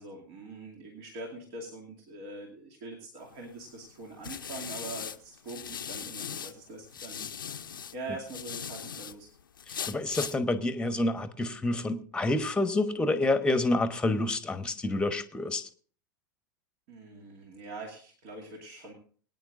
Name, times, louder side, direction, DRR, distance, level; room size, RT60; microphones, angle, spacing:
voice 1, 0.0-9.3 16.9-18.9, right 2 dB, 55° right, 0 dB, 2.5 m, -43 dB
sound 1, 3.3-6.5 6.9-9.1 9.6-10.4, left 8 dB, 85° left, 0.6 m, -39 dB
voice 2, 9.7-15.7, left 2 dB, 10° left, 10 dB, 1.1 m, -28 dB
22.0 x 9.6 x 2.6 m, 0.43 s
hypercardioid pair, 90°, 11 cm